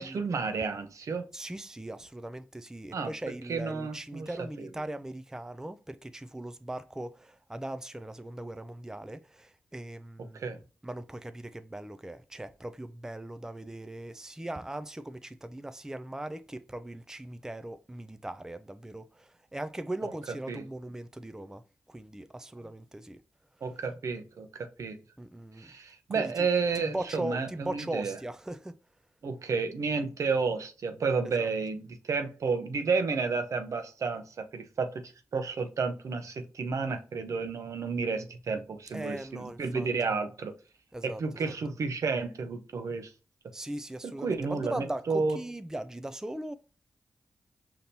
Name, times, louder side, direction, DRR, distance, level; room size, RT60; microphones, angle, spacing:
voice 1, 0.0-1.3 2.9-3.1 3.5-4.3 10.3-10.6 20.5-20.6 23.6-25.0 25.6-28.2 29.2-35.0 35.3-40.5 41.0-43.1 44.0-45.4, right 4 dB, 70° right, 0.7 m, -31 dB
voice 2, 1.3-21.6 21.9-23.2 23.7-23.8 25.2-25.7 26.1-26.5 26.7-28.8 31.2-31.5 38.9-39.9 40.9-41.5 43.5-46.5, right 1 dB, 10° right, 0.4 m, -39 dB
5.1 x 2.9 x 2.7 m
cardioid pair, 50°, 5 cm